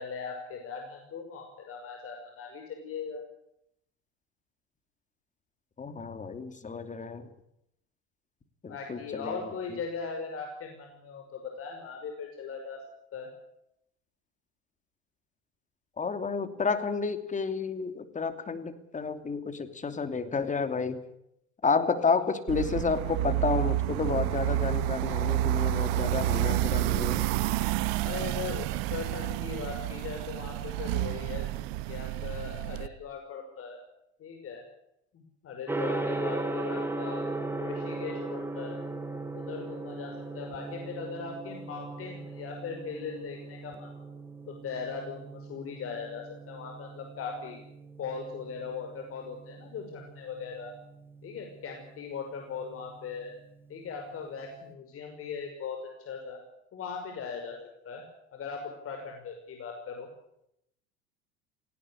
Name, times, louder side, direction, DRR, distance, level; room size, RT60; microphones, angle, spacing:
voice 1, 0.0-3.2 8.7-12.8 13.1-13.3 28.0-31.5 31.9-33.8 34.2-34.6 35.1-37.3 37.6-38.8 39.3-44.1 44.5-47.6 48.0-50.7 51.2-53.3 53.7-55.8 56.1-56.4 56.7-57.6 57.8-58.0 58.3-60.1, left 5 dB, 45° left, 3 dB, 6.0 m, -39 dB
voice 2, 5.8-7.3 8.6-9.8 16.0-21.0 21.6-27.2, left 5 dB, 25° left, 9 dB, 3.0 m, -31 dB
sound 1, 22.5-32.9, right 14 dB, 70° right, 1.3 m, -29 dB
Gong, 35.7-54.6, right 2 dB, 5° right, 3.3 m, -38 dB
18.5 x 17.5 x 10.0 m, 0.78 s
hypercardioid pair, 85°, 32 cm